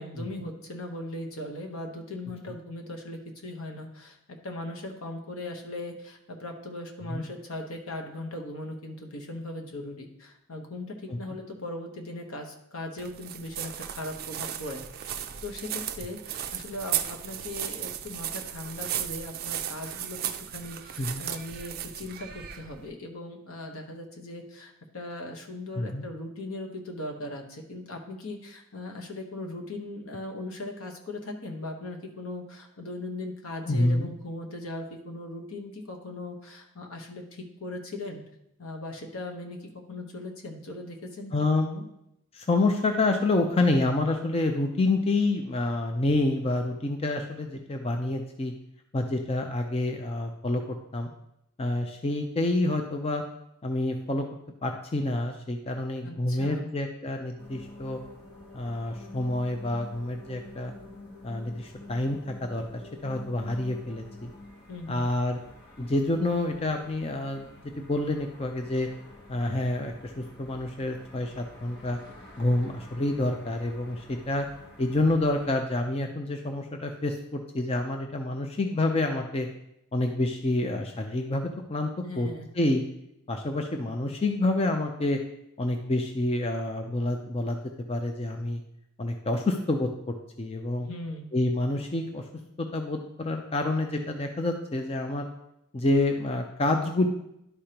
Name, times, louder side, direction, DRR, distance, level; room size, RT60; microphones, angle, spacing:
voice 1, 0.0-4.2 4.4-38.2 38.6-41.3 41.7-41.8 56.0-56.7 64.7-65.1 82.0-82.5 90.8-91.3, left 2 dB, 70° left, 3 dB, 1.1 m, -39 dB
sound 1, 13.0-22.9, right 10 dB, 45° right, 0.4 m, -35 dB
voice 2, 33.7-34.1 41.3-41.7 42.3-48.5 48.9-51.1 51.6-53.2 53.6-54.3 54.6-58.0 58.5-60.7 61.2-64.3 64.9-65.4 65.8-68.9 69.3-72.0 72.4-74.5 74.8-79.5 79.9-81.9 82.2-82.3 82.6-82.8 83.3-85.2 85.6-87.6 87.9-88.6 89.0-90.9 91.3-92.2 92.6-95.3 95.7-97.1, left 2 dB, 25° left, 4 dB, 0.4 m, -28 dB
sound 2, 57.4-75.5, left 1 dB, 50° left, 1.3 m, -48 dB
11.0 x 5.0 x 2.9 m, 0.82 s
head